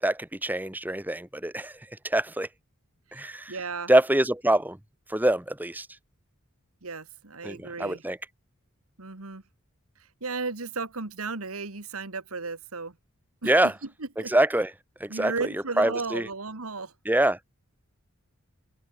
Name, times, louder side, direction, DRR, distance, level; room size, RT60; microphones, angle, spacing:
voice 1, 0.0-1.7 2.0-2.5 3.1-3.5 3.9-4.8 5.1-5.9 7.4-8.2 13.4-13.7 14.3-14.7 15.0-15.3 15.8-16.3 17.1-17.4, right 1 dB, 10° right, 1.1 m, -24 dB
voice 2, 3.1-3.9 6.8-8.0 9.0-9.4 10.2-13.0 13.4-13.5 13.8-14.3 15.1-16.9, right 4 dB, 85° right, 1.9 m, -35 dB
open air
head